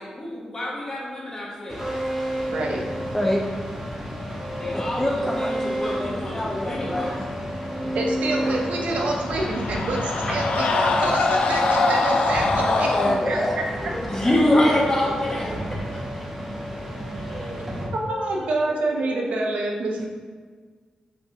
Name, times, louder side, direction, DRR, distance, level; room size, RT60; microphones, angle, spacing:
voice 1, 0.0-1.9 4.6-7.2 14.1-16.3 17.2-17.7 18.0-19.3, left 1 dB, 30° left, -4 dB, 1.2 m, -27 dB
sound 1, 1.7-17.9, equal, 15° right, 0.9 m, -31 dB
voice 2, 2.5-2.8 7.9-13.0 13.2-13.6 17.3-17.6 17.9-20.1, right 2 dB, 90° right, 0 dB, 0.7 m, -27 dB
voice 3, 4.7-7.3 10.0-10.3 12.6-15.2, left 1 dB, 10° left, -1 dB, 0.5 m, -28 dB
sound 2, 8.7-13.2, left 3 dB, 80° left, 0.4 m, -23 dB
5.2 x 3.3 x 2.9 m, 1.5 s
wide cardioid pair, 115°, 2 cm